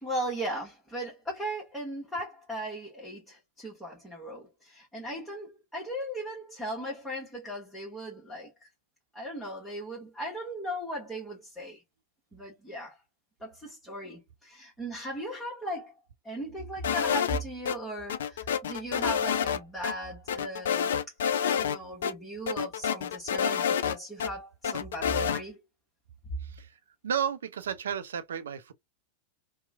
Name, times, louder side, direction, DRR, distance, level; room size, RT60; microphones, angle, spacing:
voice 1, 0.0-8.7 9.1-11.8 12.3-13.0 13.4-15.9 16.2-20.9 21.4-25.6, right 1 dB, 5° left, 1.1 m, -37 dB
sound 1, 16.8-17.8 18.1-19.6 19.8-19.9 20.3-21.8 22.0-22.1 22.5-24.3 24.6-25.4, left 8 dB, 60° left, 0.3 m, -28 dB
voice 2, 26.4-26.8 27.0-28.7, right 8 dB, 65° right, 0.5 m, -33 dB
2.9 x 2.1 x 3.4 m
figure-of-eight pair, 90°, 0 cm